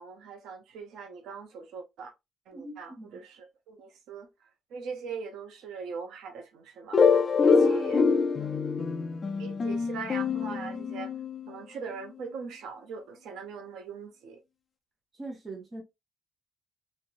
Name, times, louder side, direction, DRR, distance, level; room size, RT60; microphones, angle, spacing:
voice 1, 0.0-2.1 2.5-4.3 4.7-7.0 7.4-8.0 9.4-11.1 11.5-14.4, right 5 dB, 80° right, 0.6 m, -41 dB
voice 2, 2.5-3.2 7.5-8.7 15.1-15.8, right 2 dB, 20° right, 1.1 m, -41 dB
sound 1, 6.9-11.5, left 5 dB, 25° left, 0.3 m, -25 dB
3.1 x 2.6 x 2.4 m
cardioid pair, 175°, 0 cm